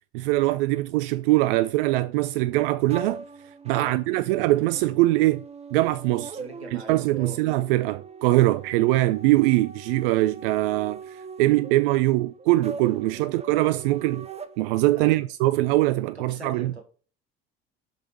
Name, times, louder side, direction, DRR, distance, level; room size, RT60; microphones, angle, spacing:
voice 1, 0.1-3.2 3.7-5.4 5.7-6.4 6.7-14.3 14.6-16.8, right 17 dB, 60° right, 0.4 m, -22 dB
sound 1, 2.9-15.2, right 5 dB, 20° right, 0.8 m, -41 dB
voice 2, 6.4-7.4 13.1-13.3 14.9-15.2 16.1-16.8, right 3 dB, 85° right, 1.6 m, -41 dB
7.4 x 5.6 x 5.3 m
figure-of-eight pair, 60°, 32 cm